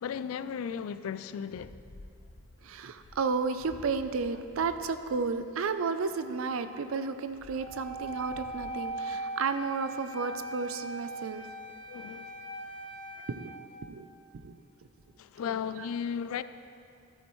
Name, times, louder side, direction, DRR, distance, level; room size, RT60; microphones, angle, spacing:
voice 1, 0.0-1.7 9.0-9.1 11.9-12.3 13.2-13.3 15.2-16.4, left 7 dB, 90° left, 0.3 m, -35 dB
sound 1, 1.5-5.4 7.2-8.9, left 1 dB, 70° left, 0.7 m, -52 dB
voice 2, 2.6-11.5 13.3-13.5 13.8-14.1 14.3-14.6 15.8-15.9, right 4 dB, 80° right, 0.5 m, -32 dB
Wind instrument woodwind instrument, 7.6-13.5, right 1 dB, 20° left, 1.6 m, -40 dB
13.0 x 8.7 x 3.1 m
head